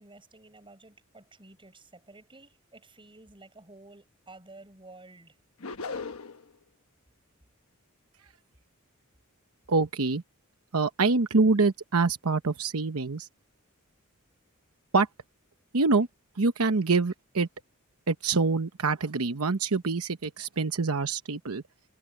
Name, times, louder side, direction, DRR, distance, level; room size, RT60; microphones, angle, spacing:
voice 1, 0.0-5.4, right 2 dB, 25° right, 7.1 m, -52 dB
sound 1, 5.6-6.5, left 4 dB, 70° left, 1.2 m, -37 dB
voice 2, 9.7-10.2 10.7-13.3 14.9-15.1 15.7-16.1 16.4-17.5 18.1-21.6, right 3 dB, 80° right, 1.0 m, -25 dB
head